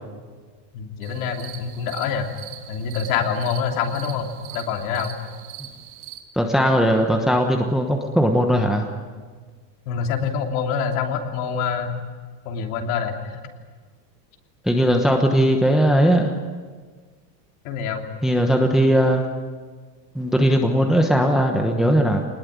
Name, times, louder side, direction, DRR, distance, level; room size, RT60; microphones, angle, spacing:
voice 1, 0.7-2.3 2.7-5.1 9.9-11.9 12.4-13.4 17.6-18.1, left 6 dB, 55° left, 3 dB, 3.2 m, -26 dB
sound 1, 1.0-6.2, right 11 dB, 85° right, 3.4 m, -41 dB
voice 2, 6.4-8.9 14.6-16.3 18.2-19.2 20.1-22.3, equal, ahead, 2 dB, 1.1 m, -18 dB
25.0 x 20.0 x 9.4 m, 1.5 s
supercardioid pair, 175°, 49 cm